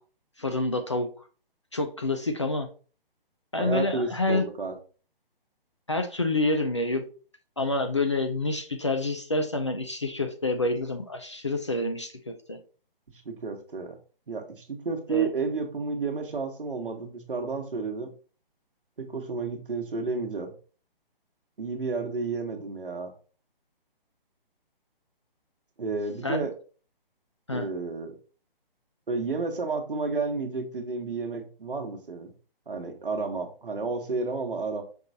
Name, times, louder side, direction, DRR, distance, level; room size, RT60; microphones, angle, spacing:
voice 1, 0.4-1.1 1.7-2.7 3.5-4.4 5.9-7.0 7.6-12.6 15.1-15.3 26.2-26.5 27.5-27.7, left 2 dB, 30° left, 5 dB, 0.4 m, -28 dB
voice 2, 3.6-4.7 13.2-14.0 14.3-18.1 19.0-20.5 21.6-23.1 25.8-26.5 27.5-28.2 29.1-32.3 32.7-34.8, right 4 dB, 65° right, 5 dB, 1.1 m, -31 dB
5.3 x 3.0 x 2.6 m, 0.38 s
figure-of-eight pair, 135°, 29 cm